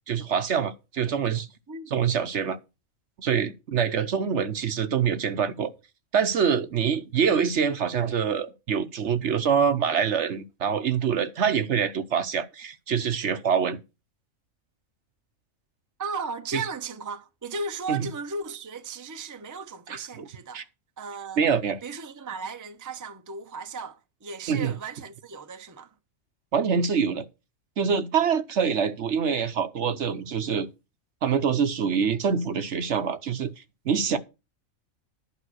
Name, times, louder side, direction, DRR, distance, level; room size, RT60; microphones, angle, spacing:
voice 1, 0.1-1.5 1.9-2.6 3.2-5.7 6.1-13.8 16.5-16.6 17.9-18.1 19.9-20.3 20.5-20.6 21.4-21.8 24.5-24.7 26.5-27.3 27.8-30.7 31.2-33.5 33.9-34.2, right 7 dB, 60° right, 1.1 m, -25 dB
voice 2, 1.7-2.1 16.0-20.6 21.0-21.4 21.8-25.9, right 4 dB, 20° right, 0.6 m, -36 dB
11.5 x 5.4 x 6.3 m
omnidirectional pair, 1.4 m